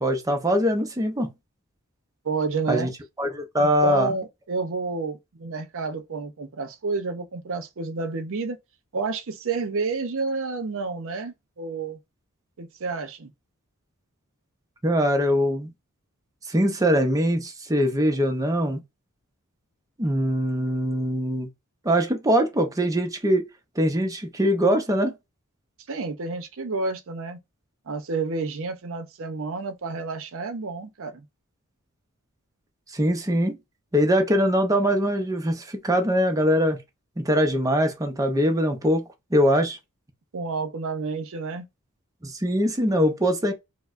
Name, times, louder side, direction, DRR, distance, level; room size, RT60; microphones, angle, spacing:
voice 1, 0.0-1.3 2.7-2.9 3.2-4.1 14.8-15.7 16.5-18.8 20.0-21.5 21.8-23.4 23.8-25.1 32.9-33.6 33.9-36.8 37.2-39.8 42.2-43.5, equal, 15° right, 0.6 m, -22 dB
voice 2, 2.2-2.9 3.6-8.6 8.9-12.0 12.6-13.3 25.9-27.4 27.9-31.3 40.3-41.7, right 4 dB, 60° right, 0.6 m, -30 dB
4.5 x 2.0 x 2.4 m
head